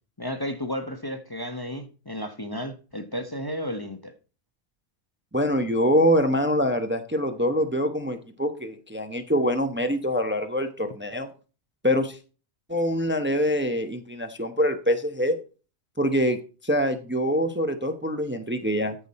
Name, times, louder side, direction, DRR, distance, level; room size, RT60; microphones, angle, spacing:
voice 1, 0.2-4.1, equal, 20° left, 0.9 m, -33 dB
voice 2, 5.3-11.3 11.8-12.2 12.7-15.4 16.0-16.4 16.6-18.9, equal, 10° right, 0.8 m, -24 dB
14.0 x 6.1 x 4.2 m
omnidirectional pair, 1.1 m